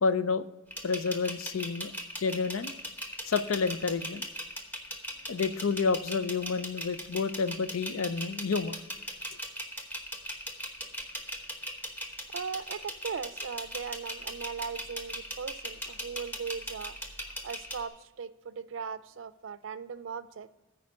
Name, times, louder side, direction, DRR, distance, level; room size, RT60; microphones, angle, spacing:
voice 1, 0.0-0.4 0.8-1.9 2.2-2.7 3.3-4.2 5.3-8.8, left 5 dB, 85° left, 14 dB, 0.5 m, -29 dB
sound 1, 0.7-17.8, equal, 10° left, 1.0 m, -38 dB
voice 2, 12.3-17.0 17.3-20.5, right 6 dB, 65° right, 15 dB, 0.4 m, -38 dB
9.5 x 4.6 x 6.3 m, 1.1 s
head